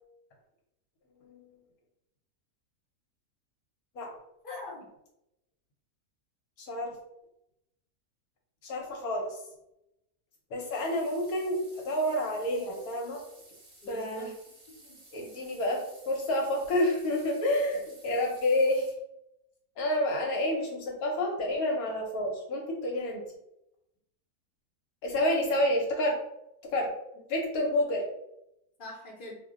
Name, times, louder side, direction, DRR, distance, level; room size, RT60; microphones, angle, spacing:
voice 1, 4.4-4.9 13.8-14.3 14.7-15.4 28.8-29.3, left 2 dB, 40° left, -4 dB, 0.8 m, -44 dB
voice 2, 6.6-6.9 8.6-9.4 10.5-13.2 13.9-14.3 15.1-18.9 19.8-23.2 25.0-26.2 26.7-26.9 27.3-28.0, left 1 dB, 70° left, 0 dB, 1.1 m, -29 dB
sound 1, 10.7-18.9, right 1 dB, 45° right, 0.4 m, -56 dB
2.6 x 2.1 x 3.7 m, 0.83 s
omnidirectional pair, 1.6 m